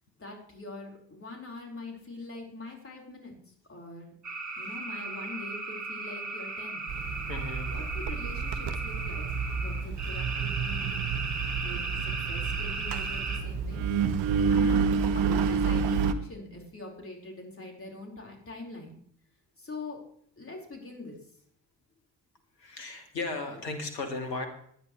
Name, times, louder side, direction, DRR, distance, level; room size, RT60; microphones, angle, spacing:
voice 1, 0.2-3.4 3.7-4.1 4.6-6.8 7.7-9.3 9.6-11.1 11.5-13.8 14.5-19.0 19.6-20.0 20.4-21.2, left 2 dB, 25° left, 0 dB, 4.6 m, -43 dB
sound 1, 4.2-13.4, right 3 dB, 35° right, 3.0 m, -36 dB
Engine, 6.9-16.1, right 6 dB, 50° right, 1.1 m, -29 dB
voice 2, 7.2-7.8 22.6-24.5, left 3 dB, 80° left, 5 dB, 2.1 m, -35 dB
18.5 x 10.5 x 3.2 m, 0.64 s
figure-of-eight pair, 45°, 49 cm